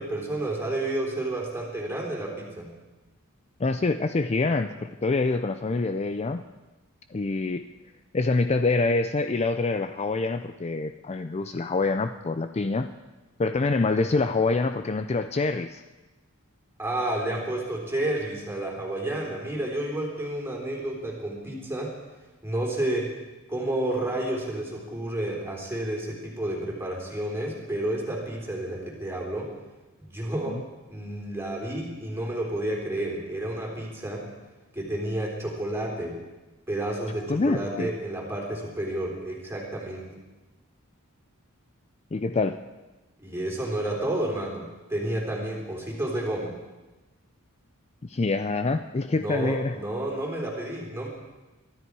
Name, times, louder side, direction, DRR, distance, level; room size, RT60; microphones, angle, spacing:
voice 1, 0.0-2.7 16.8-21.9 22.4-23.1 23.5-29.5 30.0-30.6 30.9-34.3 34.7-36.2 36.7-40.1 43.2-46.6 49.1-51.1, right 1 dB, 10° right, -2 dB, 3.7 m, -30 dB
voice 2, 3.6-6.5 7.1-7.7 8.1-12.9 13.4-15.8 30.5-30.6 37.3-37.9 42.1-42.6 48.0-49.7, left 3 dB, 30° left, 9 dB, 0.4 m, -26 dB
23.5 x 12.5 x 4.7 m, 1.1 s
head